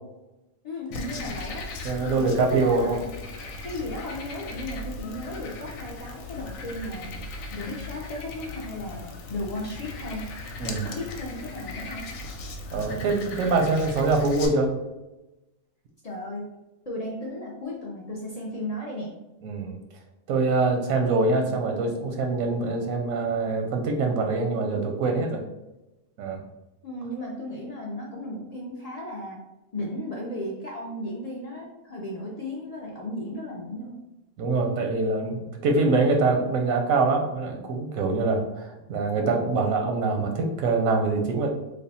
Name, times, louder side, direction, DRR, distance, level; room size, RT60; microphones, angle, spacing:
voice 1, 0.6-1.7 2.1-3.0 3.6-7.2 7.5-10.2 10.6-12.1 16.0-16.4 16.9-19.1 26.8-29.4 29.7-34.0, left 1 dB, 60° left, -3 dB, 0.4 m, -35 dB
Frog, 0.9-14.5, left 3 dB, 90° left, 1.0 m, -38 dB
voice 2, 1.8-3.0 10.6-10.8 12.7-14.8 19.4-19.8 20.3-25.4 26.2-26.4 34.4-41.5, right 3 dB, 90° right, 2 dB, 1.0 m, -24 dB
3.3 x 2.1 x 4.0 m, 0.98 s
omnidirectional pair, 1.4 m